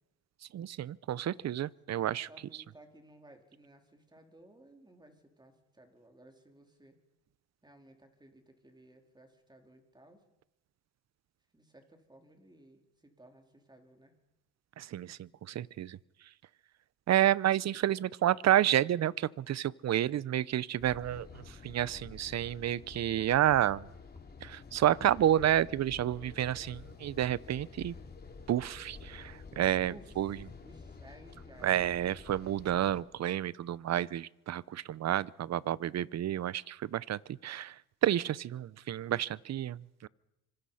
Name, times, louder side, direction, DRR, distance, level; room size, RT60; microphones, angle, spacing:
voice 1, 0.5-2.3 14.8-16.0 17.1-23.9 24.4-27.9 28.5-30.4 31.6-40.1, right 12 dB, 45° right, 21 dB, 0.7 m, -30 dB
voice 2, 1.9-7.0 7.6-10.3 11.5-14.1 29.9-30.1 30.6-31.9, right 1 dB, 10° right, 4 dB, 4.1 m, -58 dB
sound 1, 20.8-33.0, left 4 dB, 25° left, 3.4 m, -50 dB
25.5 x 25.0 x 5.7 m, 0.94 s
cardioid pair, 110°, 37 cm